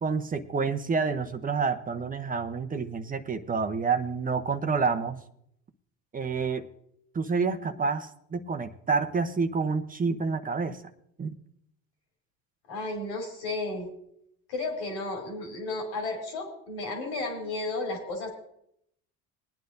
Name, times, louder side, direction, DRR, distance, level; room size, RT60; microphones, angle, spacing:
voice 1, 0.0-5.2 6.1-6.7 7.1-10.8 11.2-11.3, right 5 dB, 25° right, 9 dB, 0.8 m, -28 dB
voice 2, 12.7-13.9 14.5-18.3, left 2 dB, 85° left, 1 dB, 3.4 m, -33 dB
21.0 x 9.5 x 2.6 m, 0.73 s
supercardioid pair, 90°, 33 cm